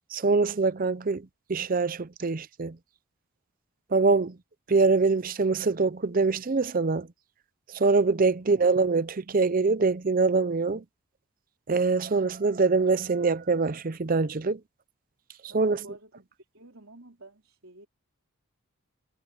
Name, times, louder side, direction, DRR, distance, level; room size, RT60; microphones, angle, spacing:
voice 1, 0.1-2.8 3.9-4.4 4.7-7.1 7.7-10.8 11.7-14.6 15.5-15.8, right 4 dB, 40° right, 0.5 m, -24 dB
voice 2, 8.2-8.6 15.4-17.9, right 2 dB, 65° right, 4.4 m, -51 dB
head